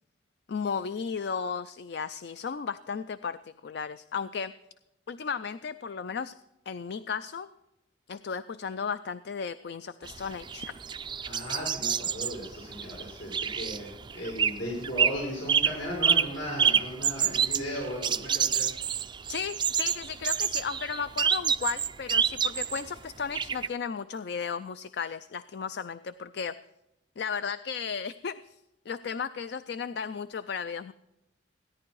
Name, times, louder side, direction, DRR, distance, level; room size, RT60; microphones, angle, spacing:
voice 1, 0.5-3.4 3.6-4.5 5.1-6.3 6.7-7.5 8.1-10.7 19.3-26.6 27.2-28.4 28.9-30.9, left 6 dB, 60° left, 13 dB, 0.4 m, -34 dB
sound 1, 10.1-14.6 14.8-15.2 15.5-22.9 23.3-23.7, right 7 dB, 25° right, 0.4 m, -27 dB
voice 2, 11.2-18.7, equal, 90° left, -3 dB, 5.2 m, -36 dB
16.5 x 10.5 x 4.7 m, 0.94 s
head